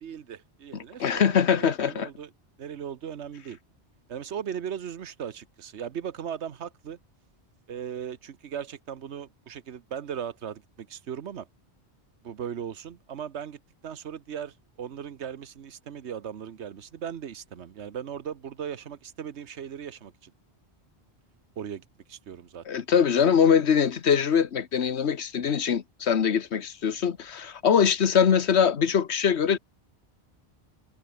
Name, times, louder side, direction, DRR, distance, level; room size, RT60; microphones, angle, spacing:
voice 1, 0.0-2.3 2.6-3.6 4.1-7.0 7.7-11.5 12.2-20.3 21.6-22.6, right 8 dB, 85° right, 1.3 m, -38 dB
voice 2, 0.7-2.1 22.7-29.6, left 7 dB, 80° left, 1.4 m, -23 dB
omnidirectional pair, 1.1 m